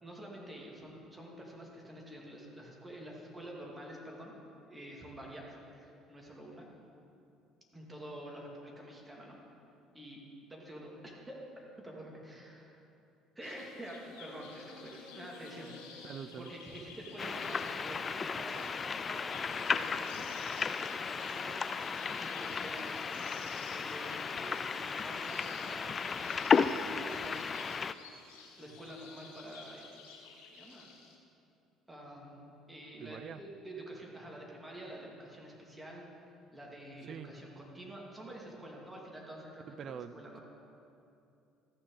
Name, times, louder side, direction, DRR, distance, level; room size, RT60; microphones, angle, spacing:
voice 1, 0.0-4.3 4.7-6.7 7.7-9.4 9.9-10.2 10.5-11.4 11.8-12.8 13.3-15.7 16.4-18.7 19.1-20.3 20.7-27.4 28.2-29.9 30.2-30.9 31.9-36.0 36.5-40.4, right 1 dB, 15° right, -2 dB, 2.5 m, -48 dB
sound 1, 13.4-31.2, left 4 dB, 75° left, 1.3 m, -52 dB
voice 2, 16.0-16.5 33.0-33.4 37.1-37.3 39.7-40.2, right 8 dB, 50° right, 14 dB, 0.3 m, -44 dB
sound 2, 17.2-27.9, left 5 dB, 35° left, 0.3 m, -34 dB
14.0 x 6.6 x 4.0 m, 2.7 s
hypercardioid pair, 60°, 0 cm